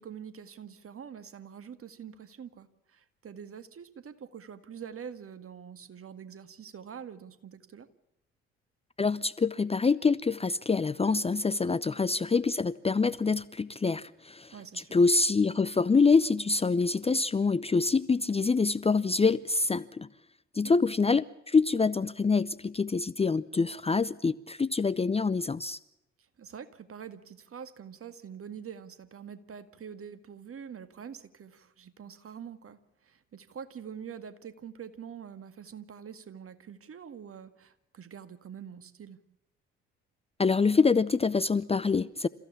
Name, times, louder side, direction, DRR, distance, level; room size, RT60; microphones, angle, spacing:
voice 1, 0.0-7.9 11.6-11.9 14.5-15.0 20.6-20.7 26.2-39.2, right 7 dB, 45° right, 1.9 m, -45 dB
voice 2, 9.0-14.5 14.9-20.1 20.5-25.8 40.4-42.3, left 4 dB, 20° left, 0.7 m, -26 dB
29.0 x 15.0 x 7.1 m
hypercardioid pair, 50°, 32 cm